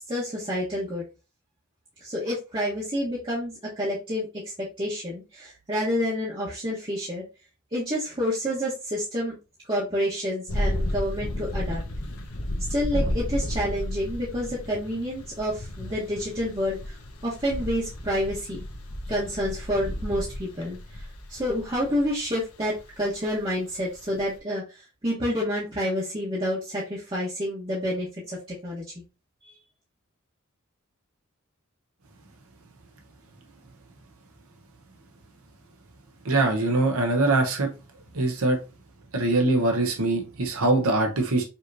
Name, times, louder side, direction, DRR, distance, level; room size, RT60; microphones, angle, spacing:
voice 1, 0.1-1.0 2.0-7.2 7.7-9.4 9.7-11.8 12.7-16.8 17.2-18.6 19.1-21.0 21.3-29.0 29.5-29.6, equal, 25° right, -7 dB, 1.2 m, -29 dB
sound 1, 10.5-24.4, left 1 dB, 80° left, 0.9 m, -33 dB
voice 2, 36.2-37.7 38.1-38.6 39.1-41.4, right 2 dB, 80° right, 3 dB, 0.9 m, -23 dB
5.5 x 3.0 x 2.6 m, 0.30 s
head